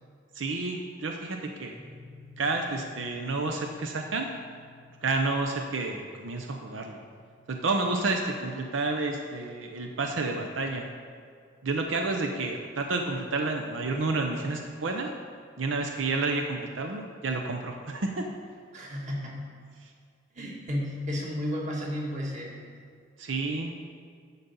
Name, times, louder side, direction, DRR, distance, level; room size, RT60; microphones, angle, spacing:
voice 1, 0.3-1.7 2.4-4.3 5.0-7.0 7.5-10.9 11.6-15.1 15.6-18.3 19.8-19.9 23.2-23.8, right 3 dB, 90° right, 3 dB, 0.7 m, -30 dB
sound 1, 1.8-11.9, left 3 dB, 5° left, 0.8 m, -55 dB
voice 2, 18.7-19.4 20.3-22.5, left 1 dB, 40° right, -3 dB, 1.8 m, -32 dB
10.5 x 4.0 x 7.0 m, 2.1 s
head